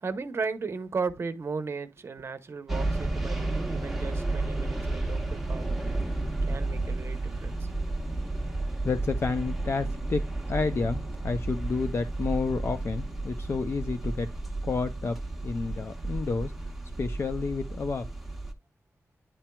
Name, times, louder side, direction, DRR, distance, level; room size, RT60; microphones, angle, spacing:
voice 1, 0.0-5.7 6.0-6.1 6.4-7.7, right 4 dB, 50° right, 0.9 m, -35 dB
sound 1, 2.7-18.5, right 2 dB, ahead, 1.1 m, -32 dB
voice 2, 8.8-10.2 10.5-14.3 14.6-15.2 15.4-16.5 17.0-18.1, left 4 dB, 50° left, 0.5 m, -30 dB
10.0 x 4.3 x 2.3 m
wide cardioid pair, 160°, 6 cm